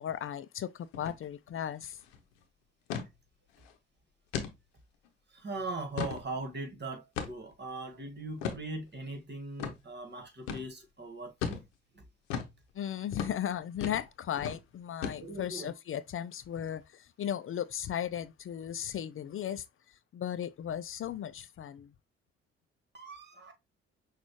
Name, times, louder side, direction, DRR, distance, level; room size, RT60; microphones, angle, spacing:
voice 1, 0.0-2.0 12.7-19.6 20.1-21.9, left 10 dB, 45° left, 0.5 m, -36 dB
sound 1, 0.9-1.2 1.5-1.6 1.9-2.2 2.9-3.1 3.6-3.7 4.3-4.5 5.0-5.1 5.7-6.2 7.2-7.5 8.4-8.6 9.6-9.8 10.5-10.7 11.4-11.6 12.3-12.5 13.1-13.4 13.8-14.1 14.4-14.6 15.0-15.5, left 7 dB, 85° left, 0.8 m, -36 dB
voice 2, 5.3-11.6 15.2-15.7 22.9-23.5, right 2 dB, 35° right, 1.7 m, -40 dB
6.0 x 2.5 x 3.0 m
hypercardioid pair, 50°, 31 cm